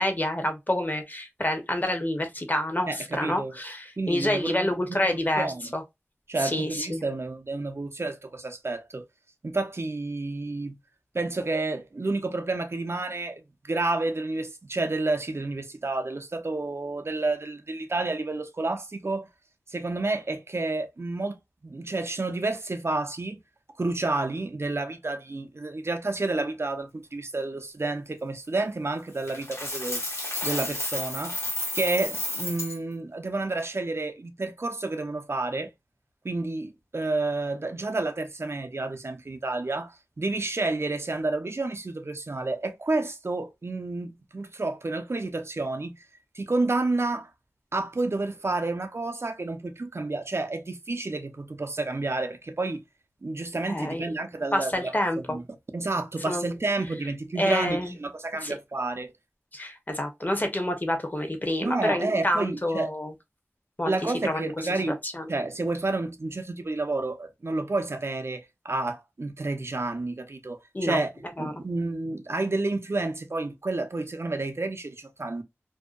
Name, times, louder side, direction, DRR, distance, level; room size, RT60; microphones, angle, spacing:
voice 1, 0.0-5.5 5.7-5.8 6.4-7.0 53.7-54.1 54.5-55.4 56.3-56.5 57.4-58.0 58.4-58.5 59.5-63.1 63.8-64.5 65.0-65.3 70.7-71.0 71.4-71.5, left 1 dB, 35° left, 0.7 m, -28 dB
voice 2, 2.9-3.5 4.0-5.7 6.3-9.1 9.4-10.8 11.1-19.3 19.7-21.4 21.6-23.4 23.8-30.0 30.4-31.4 31.7-35.7 36.2-46.1 46.3-47.3 47.7-52.8 53.2-55.0 55.3-55.4 55.7-59.1 61.6-62.9 63.9-65.0 65.3-75.4, right 2 dB, 55° right, 0.5 m, -30 dB
Coin (dropping), 29.3-32.8, left 1 dB, 60° left, 0.9 m, -32 dB
2.6 x 2.1 x 2.3 m
wide cardioid pair, 45°, 5 cm